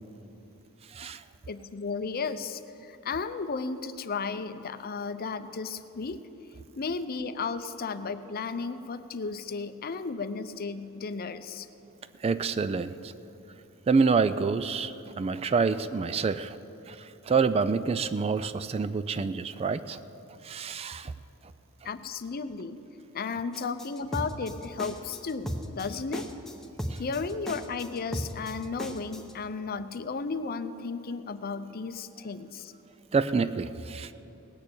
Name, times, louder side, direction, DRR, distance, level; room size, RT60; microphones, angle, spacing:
voice 1, 0.9-1.2 12.2-13.1 13.9-16.6 16.9-20.0 20.4-21.1 33.1-34.1, right 5 dB, 25° right, 13 dB, 0.3 m, -27 dB
voice 2, 1.5-6.2 6.8-11.7 21.8-22.8 23.1-26.3 27.0-32.7, left 4 dB, 40° left, 11 dB, 0.6 m, -34 dB
sound 1, 23.5-29.3, equal, ahead, 0.8 m, -36 dB
18.5 x 6.7 x 8.5 m, 2.9 s
head